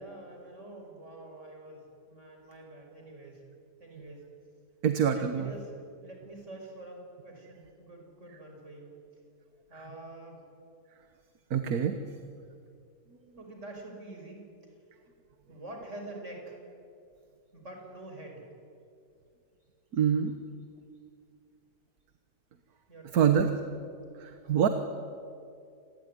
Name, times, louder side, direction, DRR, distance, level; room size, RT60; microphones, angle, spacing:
voice 1, 0.0-3.4 3.8-4.2 5.1-5.7 6.0-9.0 9.7-10.4 13.4-14.4 15.5-16.6 17.5-18.4 22.9-23.5, right 2 dB, 45° right, 2 dB, 5.5 m, -46 dB
voice 2, 4.8-5.5 11.5-12.0 19.9-20.3 23.1-23.5 24.2-24.7, right 8 dB, 70° right, 8 dB, 1.7 m, -25 dB
27.5 x 20.0 x 9.7 m, 2.5 s
omnidirectional pair, 1.7 m